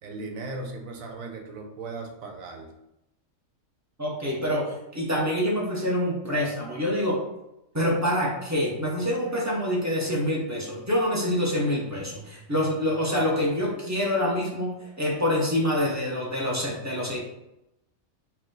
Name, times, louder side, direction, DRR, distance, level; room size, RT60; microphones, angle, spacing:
voice 1, 0.0-2.7 8.3-8.4, right 3 dB, 80° right, 3 dB, 1.1 m, -37 dB
voice 2, 4.0-7.2 7.7-17.2, left 1 dB, 15° right, -3 dB, 0.7 m, -26 dB
4.6 x 2.2 x 3.7 m, 0.86 s
omnidirectional pair, 1.4 m